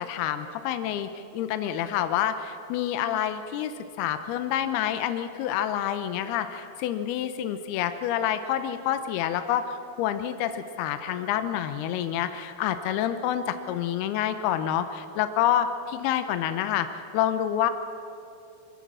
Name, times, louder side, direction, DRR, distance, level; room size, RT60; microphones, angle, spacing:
voice 1, 0.0-17.7, left 10 dB, 80° left, 10 dB, 2.7 m, -28 dB
22.5 x 18.0 x 7.5 m, 2.7 s
omnidirectional pair, 4.6 m